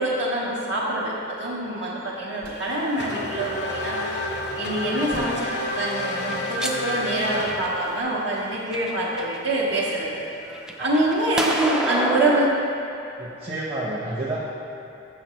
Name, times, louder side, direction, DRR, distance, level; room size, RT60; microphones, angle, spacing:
voice 1, 0.0-4.2 4.6-10.1 10.8-12.5, right 1 dB, 75° right, -6 dB, 0.9 m, -25 dB
sound 1, 1.9-2.7 4.3-4.5 4.8-5.7, equal, 50° right, 1.1 m, -39 dB
Race car auto racing / Accelerating revving vroom, 2.5-8.0, left 2 dB, 60° left, 0.6 m, -30 dB
sound 2, 6.2-7.9 8.5-9.4 9.8-12.5, right 1 dB, 5° right, 0.3 m, -29 dB
voice 2, 13.2-14.4, right 2 dB, 35° right, -7 dB, 0.8 m, -30 dB
6.6 x 6.6 x 3.0 m, 2.9 s
head